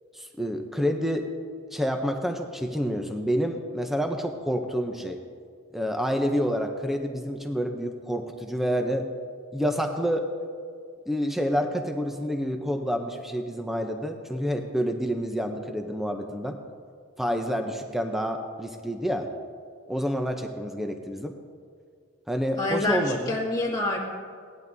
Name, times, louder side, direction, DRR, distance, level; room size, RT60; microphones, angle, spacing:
voice 1, 0.1-1.3 1.7-5.2 5.7-9.1 9.5-10.2 11.1-16.6 17.2-19.3 19.9-21.3 22.3-23.4, equal, ahead, 4 dB, 0.6 m, -28 dB
voice 2, 22.6-24.0, left 2 dB, 20° left, -3 dB, 2.0 m, -27 dB
17.5 x 11.0 x 2.7 m, 2.1 s
head